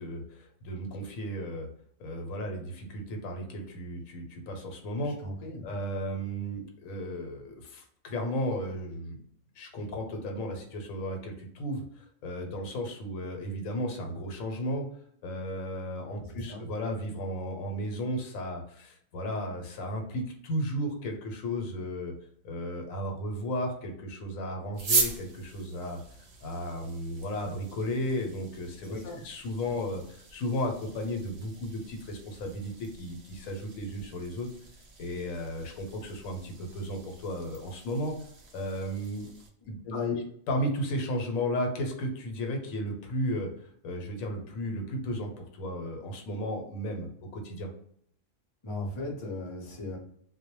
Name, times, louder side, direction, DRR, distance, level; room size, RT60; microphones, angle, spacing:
voice 1, 0.0-1.7 2.0-5.2 5.6-9.2 9.6-14.9 15.2-22.1 22.4-26.0 26.4-34.5 35.0-38.1 38.5-39.3 39.7-39.8 40.5-43.5 43.8-47.7, equal, 80° left, 3 dB, 1.0 m, -34 dB
voice 2, 5.0-5.7 16.2-16.7 28.8-29.2 39.8-40.2 48.6-50.0, left 3 dB, 30° left, -2 dB, 0.5 m, -36 dB
sound 1, 24.7-39.5, right 3 dB, 60° right, 0.8 m, -39 dB
2.2 x 2.1 x 2.9 m, 0.66 s
omnidirectional pair, 1.4 m